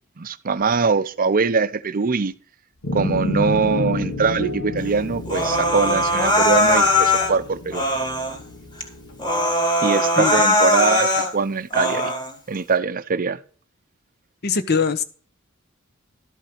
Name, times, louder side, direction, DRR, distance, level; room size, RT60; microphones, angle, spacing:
voice 1, 0.2-2.3 2.9-7.8 9.8-12.1 12.5-13.4, right 5 dB, 40° right, 0.6 m, -22 dB
sound 1, 2.8-9.4, left 1 dB, 90° left, 2.0 m, -30 dB
Human voice, 5.3-7.3 7.7-8.4 8.8-8.9 9.2-11.3 11.7-12.3, left 1 dB, 20° left, 1.6 m, -20 dB
voice 2, 14.4-15.0, left 5 dB, 50° left, 0.9 m, -21 dB
12.5 x 5.5 x 5.9 m
head